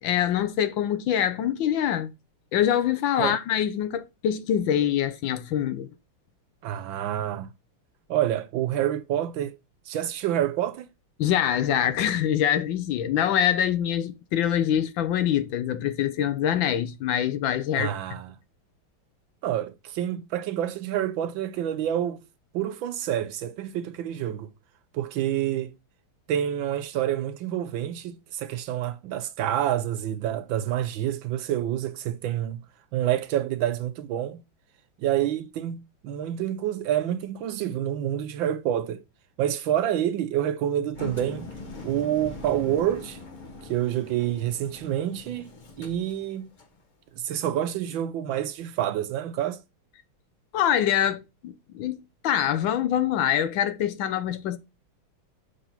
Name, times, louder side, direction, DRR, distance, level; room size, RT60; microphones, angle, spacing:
voice 1, 0.0-2.1 2.5-5.9 11.2-17.9 50.5-54.6, left 10 dB, 75° left, 1.3 m, -25 dB
voice 2, 6.6-7.5 8.1-9.6 9.9-10.9 17.7-18.3 19.4-22.2 22.5-24.5 24.9-25.7 26.3-32.6 32.9-34.4 35.0-39.0 39.4-41.5 41.8-43.2 43.6-45.5 45.8-46.5 47.2-49.6, right 11 dB, 75° right, 1.2 m, -28 dB
Engine, 40.9-46.8, left 3 dB, 40° left, 0.7 m, -42 dB
6.8 x 3.7 x 5.6 m
omnidirectional pair, 2.4 m